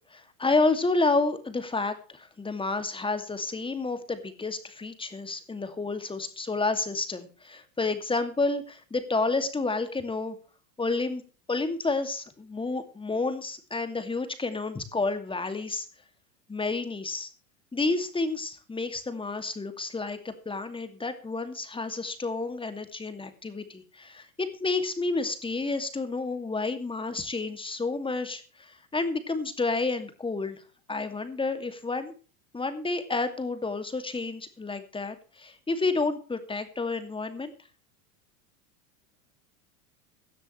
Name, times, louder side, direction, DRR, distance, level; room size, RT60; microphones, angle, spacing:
voice 1, 0.1-10.4 10.8-11.2 11.5-15.9 16.5-17.3 17.7-30.6 30.9-32.1 32.5-37.5, left 3 dB, 10° left, 9 dB, 2.3 m, -30 dB
17.5 x 12.5 x 3.2 m, 0.38 s
hypercardioid pair, 100°, 43 cm